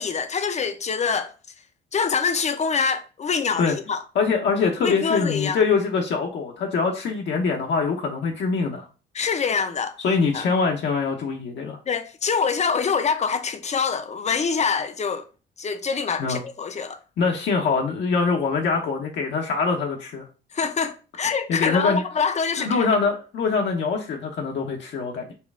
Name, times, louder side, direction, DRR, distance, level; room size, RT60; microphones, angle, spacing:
voice 1, 0.0-1.3 1.9-4.0 4.8-5.6 9.1-10.0 10.3-10.5 11.9-15.3 15.6-17.0 20.5-22.9, left 5 dB, 35° left, 0.5 m, -25 dB
voice 2, 4.1-8.9 10.0-11.8 16.2-16.4 17.2-20.2 21.5-22.0 22.6-25.3, left 4 dB, 65° left, 0.8 m, -23 dB
4.3 x 2.3 x 3.5 m
cardioid pair, 90°, 20 cm